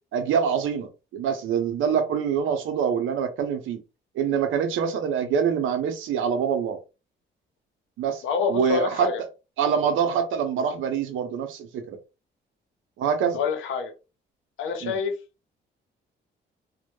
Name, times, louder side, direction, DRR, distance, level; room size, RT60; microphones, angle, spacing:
voice 1, 0.1-3.8 4.1-6.8 8.0-8.2 8.5-9.1 9.6-12.0 13.0-13.4 14.8-15.0, right 7 dB, 80° right, 0.6 m, -25 dB
voice 2, 8.2-9.2 13.3-13.9 14.6-15.1, left 5 dB, 80° left, 0.7 m, -26 dB
2.1 x 2.1 x 2.9 m
cardioid pair, 90°, 20 cm